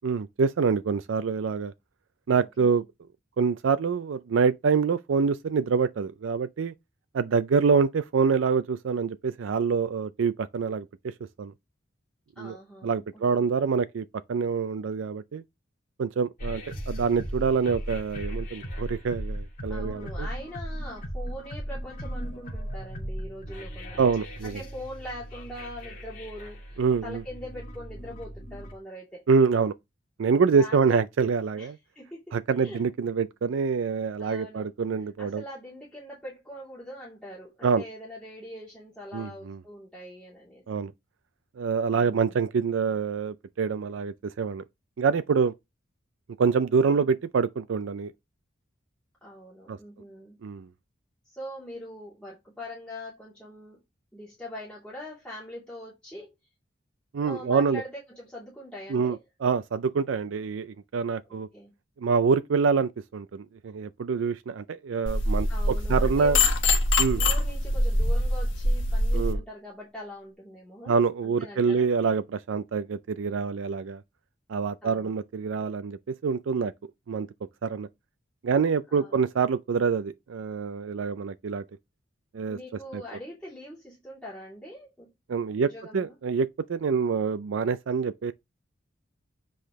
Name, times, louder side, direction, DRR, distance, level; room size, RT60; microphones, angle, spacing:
voice 1, 0.0-1.7 2.3-2.8 3.4-6.7 7.1-11.1 11.4-11.5 12.4-12.6 12.8-15.4 16.0-20.3 24.0-24.6 26.8-27.2 29.3-29.7 30.2-31.8 32.3-35.4 37.6-37.8 39.1-39.6 40.7-40.9 41.6-44.6 45.0-45.5 46.4-48.1 49.7-49.8 50.4-50.7 57.1-57.8 58.9-61.5 62.0-66.4 67.0-67.2 69.1-69.4 70.9-74.0 74.5-76.7 77.1-77.3 77.6-77.9 78.4-81.6 82.3-82.6 82.9-83.0 85.3-88.3, right 5 dB, 75° right, 0.4 m, -26 dB
voice 2, 2.4-2.8 12.3-13.5 19.7-24.0 24.4-29.2 30.5-30.8 31.6-32.2 32.6-32.8 34.2-34.7 35.2-40.6 46.6-47.1 49.2-50.4 51.3-53.8 54.1-56.3 57.2-59.2 61.5-61.7 65.5-66.4 67.1-71.9 74.8-75.2 78.9-79.2 82.5-85.1 85.6-86.1, left 1 dB, 5° left, 2.9 m, -42 dB
sound 1, 16.4-28.7, equal, 45° left, 2.2 m, -37 dB
sound 2, 65.1-69.3, left 2 dB, 70° left, 1.4 m, -24 dB
7.8 x 5.0 x 3.1 m
head